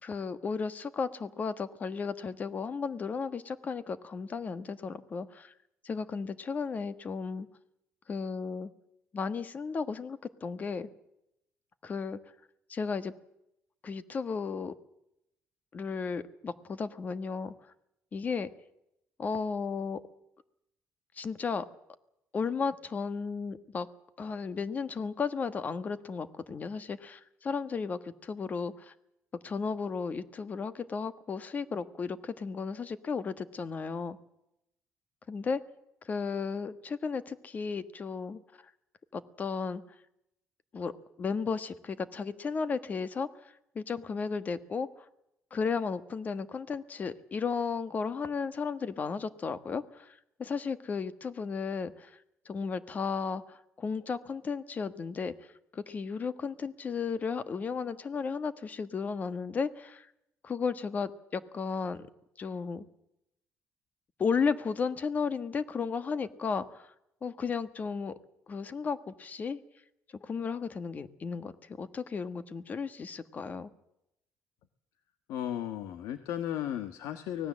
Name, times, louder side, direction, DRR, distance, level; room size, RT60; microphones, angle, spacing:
voice 1, 0.0-5.5 5.8-7.5 8.1-8.7 9.1-10.9 11.8-12.2 12.7-13.1 13.8-14.7 15.7-17.5 18.1-18.5 19.2-20.0 21.2-21.6 22.3-23.9 24.2-28.9 29.4-34.2 35.3-35.6 36.0-38.4 39.1-39.8 40.7-40.9 41.2-45.1 45.5-52.2 52.4-55.3 55.7-60.1 60.4-62.1 62.4-62.8 64.2-66.9 67.2-68.1 68.5-69.6 70.2-73.7, left 5 dB, 35° left, 13 dB, 1.4 m, -34 dB
voice 2, 75.3-77.5, left 11 dB, 85° left, 10 dB, 1.4 m, -35 dB
24.5 x 18.5 x 7.5 m, 0.82 s
cardioid pair, 135°, 5 cm